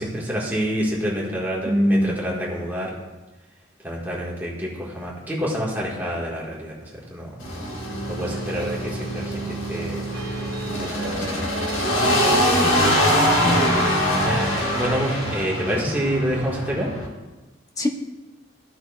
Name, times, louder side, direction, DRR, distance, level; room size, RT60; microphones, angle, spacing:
voice 1, 0.0-2.9 3.8-7.3 8.1-10.1 10.6-11.7 14.2-16.9, equal, 10° right, -5 dB, 1.6 m, -28 dB
voice 2, 1.6-2.2 12.5-13.6 17.8-17.9, equal, 15° left, 2 dB, 0.8 m, -23 dB
sound 1, 7.4-17.1, equal, 80° left, 1.7 m, -23 dB
sound 2, 10.1-15.5, right 1 dB, 75° right, 1.5 m, -36 dB
15.0 x 5.9 x 2.4 m, 1.2 s
head